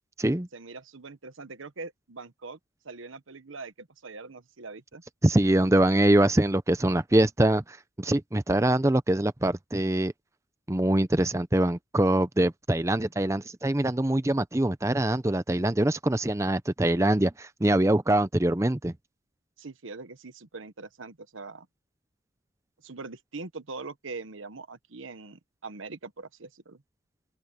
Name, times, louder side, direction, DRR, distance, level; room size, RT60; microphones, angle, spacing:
voice 1, 0.5-2.6 2.8-5.0 19.6-21.7 22.8-26.8, right 3 dB, 90° right, 1.1 m, -42 dB
voice 2, 5.2-7.6 8.0-10.1 10.7-18.9, right 1 dB, 15° right, 0.6 m, -24 dB
open air
head